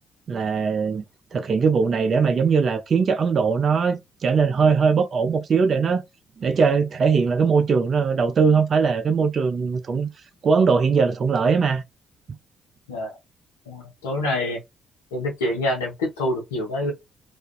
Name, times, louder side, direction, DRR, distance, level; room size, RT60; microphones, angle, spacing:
voice 1, 0.3-1.0 1.3-6.0 6.4-10.1 10.4-11.8, right 5 dB, 50° right, 0.4 m, -20 dB
voice 2, 13.7-14.6 15.1-16.9, left 1 dB, 85° left, 0.7 m, -26 dB
2.4 x 2.3 x 2.3 m
hypercardioid pair, 50°, 0 cm